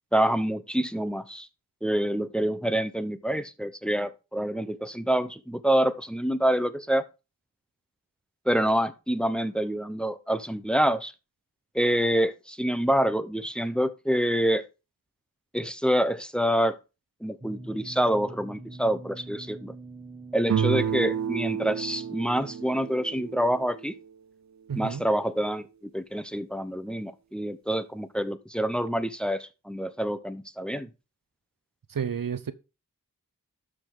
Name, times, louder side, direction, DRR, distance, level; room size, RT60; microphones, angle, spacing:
voice 1, 0.1-1.5 1.8-7.0 8.5-11.1 11.7-14.6 15.5-16.8 17.2-19.7 20.3-23.9 24.7-25.7 25.9-30.9, equal, 5° left, 0.9 m, -26 dB
sound 1, 17.4-22.6, right 3 dB, 20° right, 1.6 m, -44 dB
sound 2, 20.4-24.1, right 8 dB, 55° right, 0.5 m, -30 dB
voice 2, 24.7-25.0 31.9-32.5, right 7 dB, 80° right, 0.8 m, -31 dB
12.0 x 5.1 x 3.9 m
wide cardioid pair, 60°, 33 cm